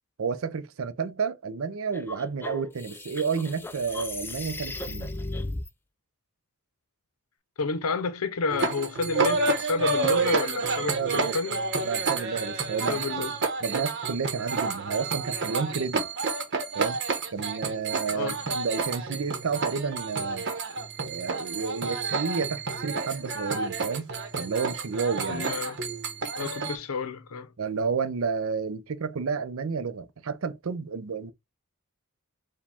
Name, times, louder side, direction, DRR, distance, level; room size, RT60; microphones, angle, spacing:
voice 1, 0.2-5.2 10.9-11.4 11.8-13.1 13.6-16.1 16.7-17.0 17.3-20.5 21.0-24.1 24.4-25.5 27.6-31.3, right 5 dB, 70° right, 0.5 m, -31 dB
sound 1, 1.9-5.7, left 2 dB, 10° left, 0.3 m, -36 dB
voice 2, 7.6-11.7 12.9-13.3 18.1-18.4 25.3-25.8 26.4-27.5, left 4 dB, 90° left, 0.7 m, -30 dB
sound 2, 8.5-26.8, right 4 dB, 55° right, 0.9 m, -29 dB
4.9 x 2.2 x 3.5 m
head